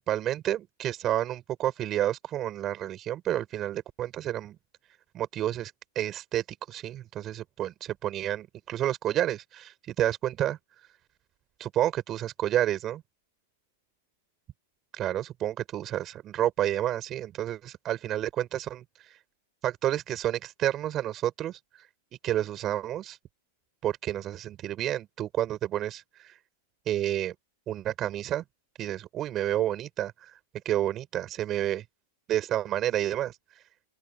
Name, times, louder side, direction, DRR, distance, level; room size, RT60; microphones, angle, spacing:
voice 1, 0.0-4.6 5.1-10.6 11.6-13.0 14.9-18.8 19.6-21.6 22.2-23.2 23.8-26.4 26.9-27.3 27.7-28.4 28.8-30.3 30.6-31.8 32.3-33.3, right 12 dB, 30° right, 6.3 m, -30 dB
open air
hypercardioid pair, 135°, 0 cm